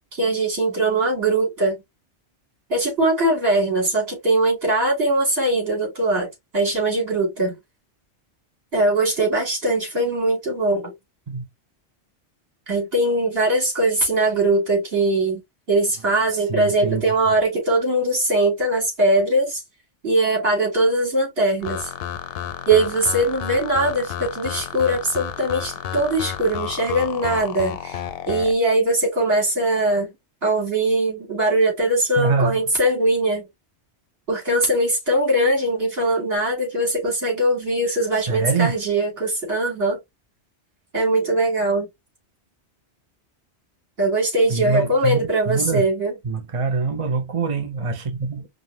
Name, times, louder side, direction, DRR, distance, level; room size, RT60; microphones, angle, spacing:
voice 1, 0.1-1.8 2.7-7.6 8.7-10.9 12.7-15.4 15.7-19.6 20.0-21.9 22.7-28.0 28.3-30.1 30.4-33.5 34.3-40.0 40.9-41.9 44.0-46.1, right 2 dB, 60° right, 3.0 m, -21 dB
voice 2, 16.3-17.1 32.2-32.6 38.2-38.7 44.5-45.2 45.5-45.8 46.2-48.5, right 4 dB, 35° right, 0.7 m, -24 dB
sound 1, 21.6-28.5, left 10 dB, 65° left, 0.7 m, -31 dB
5.2 x 2.6 x 2.7 m
omnidirectional pair, 1.2 m